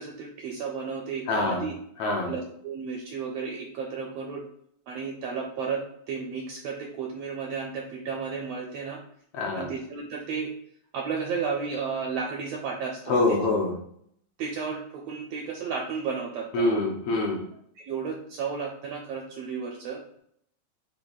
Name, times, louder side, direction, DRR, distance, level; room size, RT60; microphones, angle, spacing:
voice 1, 0.0-1.7 2.3-4.5 4.9-9.0 9.5-10.5 10.9-13.6 14.4-16.8 17.8-20.0, right 5 dB, 80° right, 1 dB, 1.4 m, -33 dB
voice 2, 1.3-1.7 2.0-2.3 9.3-9.7 13.1-13.8 16.5-17.5, left 2 dB, 70° left, 0 dB, 1.6 m, -25 dB
7.8 x 2.7 x 2.3 m, 0.68 s
omnidirectional pair, 3.3 m